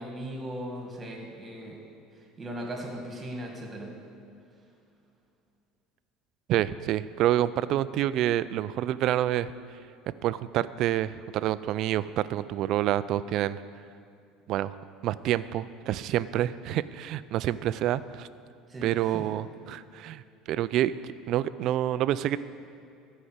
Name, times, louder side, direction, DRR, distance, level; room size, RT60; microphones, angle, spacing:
voice 1, 0.0-1.8 2.2-4.0 18.7-19.3, equal, 20° right, 1 dB, 1.9 m, -38 dB
voice 2, 6.5-9.5 10.2-13.6 14.5-14.7 15.0-18.3 18.8-20.2 20.5-20.9 21.3-22.4, right 12 dB, 50° right, 16 dB, 0.3 m, -27 dB
13.5 x 5.5 x 7.9 m, 2.5 s
cardioid pair, 145°, 0 cm